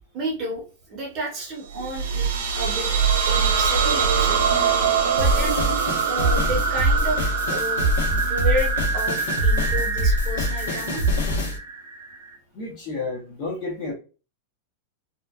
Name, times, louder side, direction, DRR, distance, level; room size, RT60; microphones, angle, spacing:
voice 1, 0.1-0.6 0.9-2.3 2.6-2.9 3.3-4.4 5.1-5.7 6.1-11.0, right 1 dB, 25° right, 0.9 m, -31 dB
sound 1, 1.7-12.3, right 6 dB, 80° right, 0.7 m, -24 dB
sound 2, 5.2-11.6, equal, 90° left, 1.0 m, -24 dB
voice 2, 12.5-13.9, left 3 dB, 30° left, 0.9 m, -31 dB
2.8 x 2.4 x 2.3 m
supercardioid pair, 180°, 0 cm